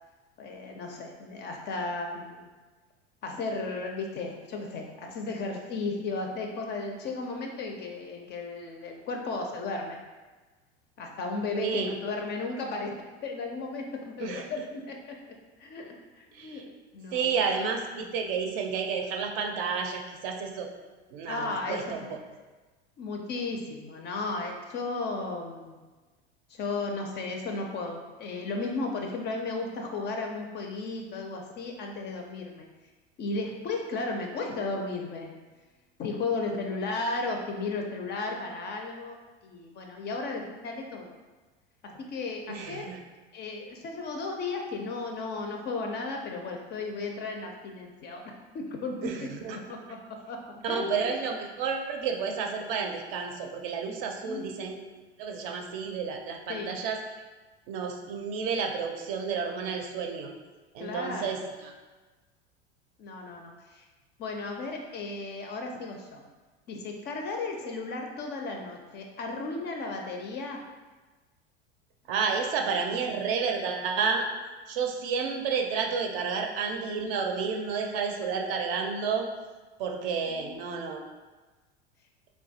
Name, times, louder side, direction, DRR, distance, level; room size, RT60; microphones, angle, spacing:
voice 1, 0.4-2.5 3.2-10.0 11.0-15.2 15.6-17.3 21.3-22.1 23.0-25.8 26.5-32.7 33.2-35.3 36.0-39.2 39.4-41.1 41.8-42.9 43.3-50.4 50.6-51.1 54.2-54.6 56.5-56.7 60.8-61.4 63.0-63.9 64.2-66.2 66.7-70.6 80.3-80.6, left 3 dB, 35° left, 2 dB, 0.4 m, -35 dB
voice 2, 11.5-11.9 14.2-14.6 16.3-16.6 17.1-20.7 21.1-22.0 42.5-43.0 49.0-49.6 50.6-54.8 55.2-57.0 57.7-60.3 60.7-61.7 72.1-74.3 74.7-79.3 79.8-81.0, right 5 dB, 60° right, 3 dB, 0.5 m, -31 dB
3.0 x 2.2 x 2.7 m, 1.3 s
hypercardioid pair, 85°, 33 cm